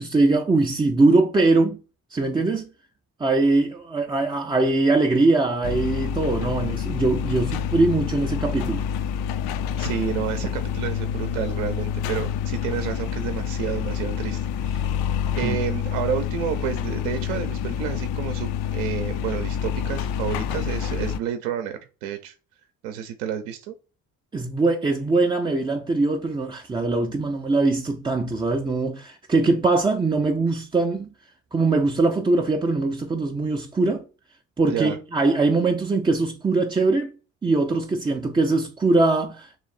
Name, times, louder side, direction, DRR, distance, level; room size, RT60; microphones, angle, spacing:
voice 1, 0.0-1.8 2.1-2.7 3.2-8.8 15.4-15.6 24.3-31.1 31.5-34.0 34.6-37.1 37.4-39.6, right 3 dB, 10° right, 0.4 m, -22 dB
sound 1, 5.6-21.2, left 8 dB, 60° left, 0.5 m, -27 dB
voice 2, 9.8-14.9 15.4-22.3 22.8-23.7 34.7-35.0, right 9 dB, 70° right, 0.6 m, -30 dB
3.1 x 3.0 x 4.1 m
hypercardioid pair, 50°, 43 cm